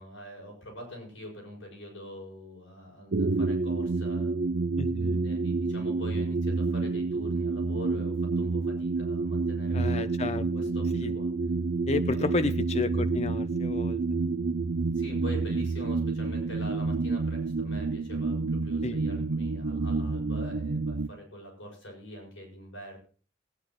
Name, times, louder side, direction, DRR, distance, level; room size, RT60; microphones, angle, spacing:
voice 1, 0.0-4.4 5.2-10.1 10.5-11.3 12.1-12.5 14.9-23.0, equal, 80° left, -1 dB, 7.1 m, -44 dB
sound 1, 3.1-21.1, right 3 dB, 60° right, 0.5 m, -29 dB
voice 2, 4.8-5.3 9.7-10.5 10.9-11.1 11.9-14.0 18.8-19.0, left 3 dB, 35° left, 10 dB, 0.6 m, -31 dB
20.5 x 9.8 x 3.0 m, 0.40 s
head